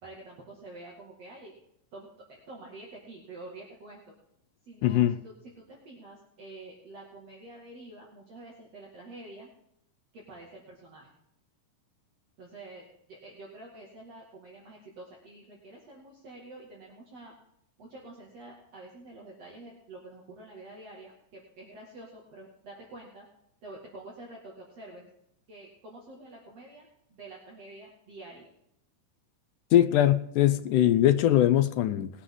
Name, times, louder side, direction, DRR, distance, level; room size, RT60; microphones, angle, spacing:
voice 1, 0.0-1.5 1.9-4.1 4.6-9.5 10.1-11.1 12.4-17.3 17.8-23.3 23.6-25.1 25.5-28.5, right 2 dB, 50° right, 3.2 m, -48 dB
voice 2, 4.8-5.2 29.7-32.1, left 12 dB, 75° left, 2.0 m, -22 dB
20.5 x 9.9 x 3.8 m
omnidirectional pair, 4.0 m